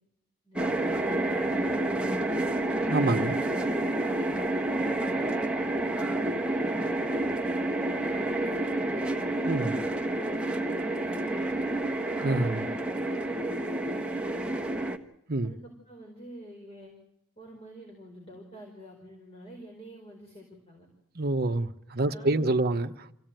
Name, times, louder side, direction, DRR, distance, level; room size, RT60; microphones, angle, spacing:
sound 1, 0.6-15.0, right 1 dB, 5° right, 1.3 m, -29 dB
voice 1, 1.0-2.5 4.0-5.4 6.0-9.2 10.0-11.6 12.4-14.9 15.4-16.9 17.4-20.9 22.0-22.7, right 1 dB, 30° left, 4.5 m, -48 dB
voice 2, 2.9-3.4 9.5-9.8 12.2-12.7 15.3-15.5 21.2-23.1, right 2 dB, 45° right, 1.1 m, -27 dB
26.0 x 16.5 x 9.1 m
head